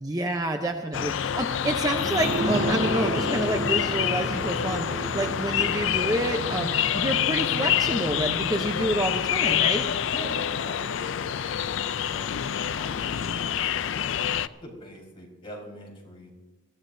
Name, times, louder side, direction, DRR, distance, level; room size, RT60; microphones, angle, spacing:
voice 1, 0.0-9.9, right 1 dB, 20° right, 4 dB, 0.6 m, -28 dB
sound 1, 0.9-14.5, left 9 dB, 65° left, 0.4 m, -27 dB
sound 2, 2.0-11.3 11.6-11.7, right 1 dB, 70° right, 2.5 m, -33 dB
voice 2, 10.1-14.1 14.6-16.3, left 1 dB, 25° left, -2 dB, 4.2 m, -43 dB
22.5 x 15.0 x 2.7 m, 1.2 s
head